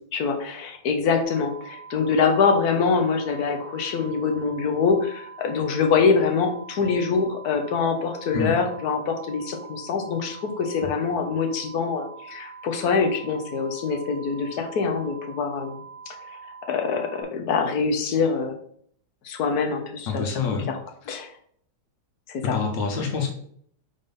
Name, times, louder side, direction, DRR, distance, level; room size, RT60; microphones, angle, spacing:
voice 1, 0.1-16.1 16.7-18.6 19.2-20.2 20.7-20.8 21.1-21.3 22.3-22.6, left 5 dB, 65° left, 4 dB, 1.4 m, -24 dB
sound 1, 1.2-17.2, right 5 dB, 60° right, 2.3 m, -43 dB
voice 2, 20.1-20.7 22.4-23.3, left 5 dB, 90° left, 3 dB, 1.8 m, -26 dB
5.3 x 3.8 x 5.3 m, 0.63 s
omnidirectional pair, 1.9 m